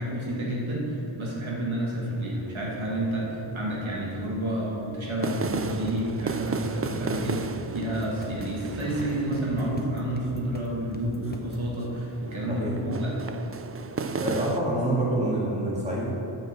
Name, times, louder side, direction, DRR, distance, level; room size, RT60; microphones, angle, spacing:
voice 1, 0.0-13.2, right 1 dB, 70° right, -4 dB, 1.9 m, -30 dB
sound 1, 2.2-14.6, right 4 dB, 30° right, 0.4 m, -36 dB
sound 2, 5.5-11.7, left 2 dB, 20° left, 0.9 m, -42 dB
voice 2, 14.2-16.1, right 1 dB, 15° right, -6 dB, 2.6 m, -26 dB
9.3 x 6.7 x 6.5 m, 3.0 s
wide cardioid pair, 100°, 50 cm